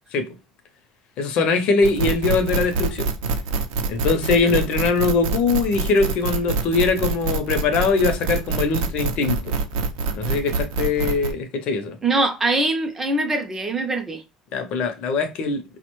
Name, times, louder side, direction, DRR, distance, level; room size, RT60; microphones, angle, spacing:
voice 1, 1.2-3.1 3.9-9.5 10.1-12.0 14.5-15.6, left 4 dB, 50° left, 0.6 m, -22 dB
sound 1, 1.8-11.3, right 3 dB, 85° right, 0.5 m, -25 dB
voice 2, 12.0-14.2, right 2 dB, 15° right, 0.4 m, -22 dB
4.7 x 2.1 x 3.0 m
cardioid pair, 175°, 2 cm